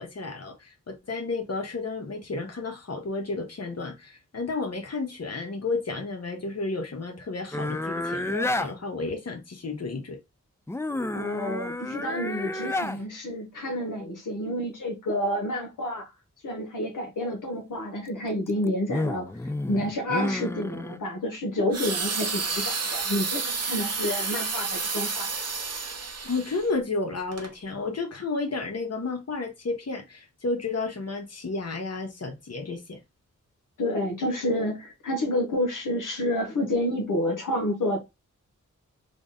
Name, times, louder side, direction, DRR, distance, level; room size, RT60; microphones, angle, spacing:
voice 1, 0.0-10.2 26.2-33.0, left 3 dB, 55° left, 1.1 m, -32 dB
sound 1, 7.5-8.7 10.7-13.0 18.3-21.0, left 2 dB, 10° left, 0.3 m, -30 dB
voice 2, 11.1-16.1 16.4-19.3 19.7-25.3 33.8-38.0, left 1 dB, 85° left, 0.9 m, -29 dB
sound 2, 21.7-26.7 27.3-27.5, right 4 dB, 55° right, 0.8 m, -30 dB
3.5 x 2.1 x 3.9 m
cardioid pair, 50°, 31 cm